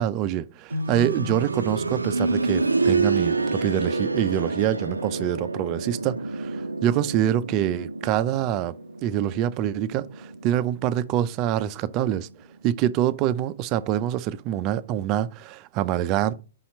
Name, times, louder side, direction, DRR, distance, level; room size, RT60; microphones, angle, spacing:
voice 1, 0.0-12.3 12.6-16.3, right 11 dB, 35° right, 0.5 m, -25 dB
sound 1, 0.7-11.5 11.8-11.9 12.8-12.9, right 3 dB, 90° right, 0.5 m, -28 dB
5.6 x 4.2 x 5.3 m
figure-of-eight pair, 115°, 0 cm